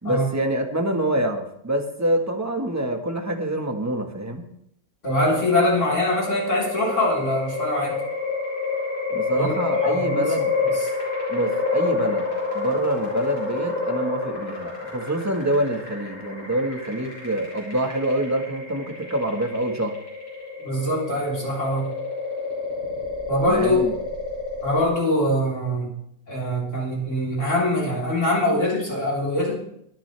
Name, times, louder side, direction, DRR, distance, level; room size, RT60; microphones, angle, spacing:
voice 1, 0.0-4.4 9.1-10.5 11.3-19.9 23.5-23.9, right 1 dB, 10° right, 3 dB, 1.6 m, -26 dB
voice 2, 5.0-8.0 9.3-9.5 9.8-10.2 20.6-21.9 23.3-24.0 24.6-25.9 26.3-29.5, left 1 dB, 55° left, -4 dB, 4.8 m, -23 dB
sound 1, 5.0-24.9, left 4 dB, 35° left, 6.9 m, -29 dB
22.0 x 10.0 x 3.5 m, 0.72 s
omnidirectional pair, 1.6 m